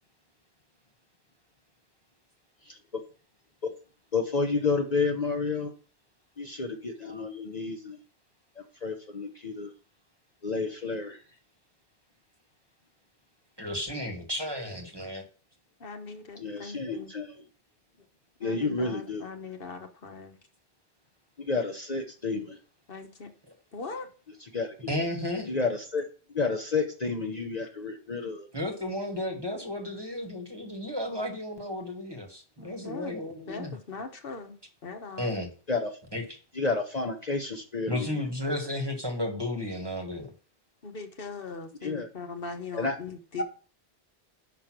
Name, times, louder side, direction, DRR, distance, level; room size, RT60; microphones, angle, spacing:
voice 1, 4.1-5.7 6.4-8.0 8.8-9.7 10.4-11.2 16.4-17.3 18.4-19.2 21.4-22.6 24.5-24.9 25.5-26.1 26.3-28.5 35.7-35.9 36.6-38.2 41.8-42.1 42.7-43.0 43.4-43.5, left 4 dB, 40° left, 3 dB, 0.9 m, -30 dB
voice 2, 13.6-15.2 24.9-25.5 28.5-33.7 35.2-35.5 36.1-36.2 37.9-40.3, left 1 dB, 25° right, 4 dB, 1.2 m, -33 dB
voice 3, 15.8-17.1 18.4-20.4 22.9-23.3 23.7-24.1 31.1-31.4 32.6-33.1 33.5-34.5 34.8-35.3 40.8-43.4, left 4 dB, 60° left, 5 dB, 1.2 m, -40 dB
5.9 x 5.1 x 6.0 m, 0.39 s
omnidirectional pair, 1.1 m